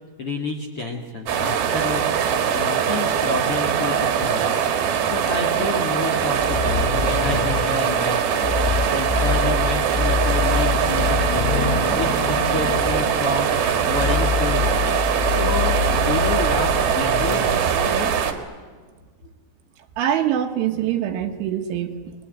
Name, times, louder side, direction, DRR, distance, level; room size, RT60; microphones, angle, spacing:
voice 1, 0.2-2.0 2.5-4.7 5.0-14.8 15.3-18.1, left 2 dB, 50° left, 2 dB, 1.7 m, -30 dB
sound 1, 1.3-18.3, right 8 dB, 60° right, 3.2 m, -22 dB
sound 2, 6.4-17.4, left 6 dB, 80° left, 4.3 m, -26 dB
voice 2, 20.0-22.2, right 10 dB, 75° right, 6 dB, 3.6 m, -24 dB
29.0 x 21.5 x 9.4 m, 1.5 s
omnidirectional pair, 5.7 m